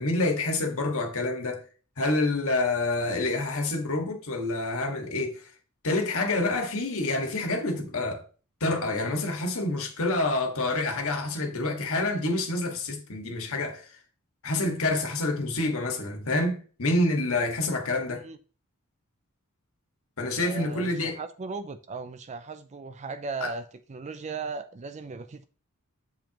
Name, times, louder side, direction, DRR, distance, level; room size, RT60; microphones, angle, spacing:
voice 1, 0.0-1.6 2.0-5.4 5.8-8.2 8.6-13.9 14.4-18.2 20.2-21.2 23.4-23.5, left 2 dB, 70° left, 1.7 m, -27 dB
voice 2, 20.3-25.4, right 4 dB, 30° right, 0.4 m, -37 dB
7.6 x 7.2 x 2.9 m
head